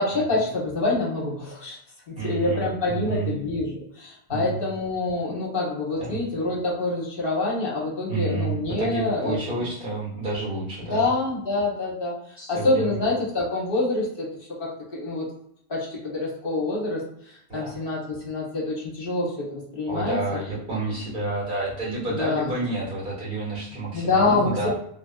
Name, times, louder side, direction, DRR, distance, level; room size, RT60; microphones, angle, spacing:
voice 1, 0.0-1.8 2.1-9.7 10.9-12.1 12.5-14.3 14.6-15.2 15.7-20.2 22.0-22.5 23.9-24.7, left 2 dB, 60° left, -4 dB, 1.1 m, -26 dB
voice 2, 2.2-3.3 4.3-4.6 6.0-6.2 8.1-11.1 12.4-13.0 17.5-17.8 19.9-24.7, right 3 dB, 55° right, -6 dB, 1.8 m, -30 dB
3.2 x 2.5 x 2.3 m, 0.72 s
omnidirectional pair, 1.1 m